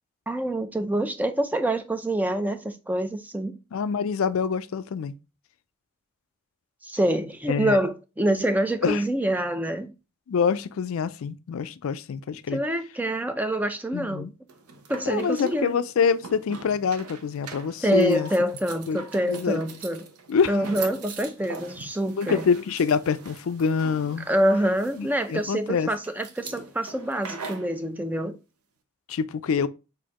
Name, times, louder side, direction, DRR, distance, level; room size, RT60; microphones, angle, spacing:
voice 1, 0.3-3.6 6.8-9.9 12.5-14.3 14.9-15.8 17.8-20.1 20.5-22.5 24.3-28.4, right 1 dB, 10° right, 0.4 m, -26 dB
voice 2, 3.7-5.1 7.5-7.8 8.8-9.0 10.3-12.6 13.9-14.3 15.1-18.3 18.9-19.6 20.3-20.5 22.1-24.3 25.0-25.9 29.1-29.7, left 6 dB, 65° left, 0.4 m, -26 dB
sound 1, 14.5-27.7, right 4 dB, 85° right, 0.8 m, -42 dB
6.3 x 2.6 x 2.9 m
head